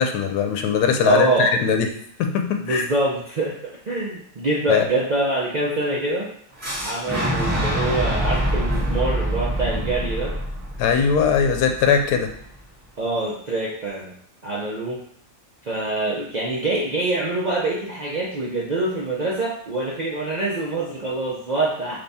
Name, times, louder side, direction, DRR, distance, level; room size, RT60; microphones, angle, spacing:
voice 1, 0.0-1.9 2.2-2.9 4.7-4.9 10.8-12.3, left 6 dB, 80° left, 4 dB, 1.1 m, -20 dB
voice 2, 1.0-1.5 2.6-6.3 6.7-10.4 13.0-14.1 14.4-15.0 15.6-22.0, right 2 dB, 70° right, -5 dB, 0.4 m, -25 dB
Boom, 6.6-12.5, right 1 dB, 10° right, 1.4 m, -25 dB
3.5 x 3.0 x 4.1 m, 0.64 s
omnidirectional pair, 1.7 m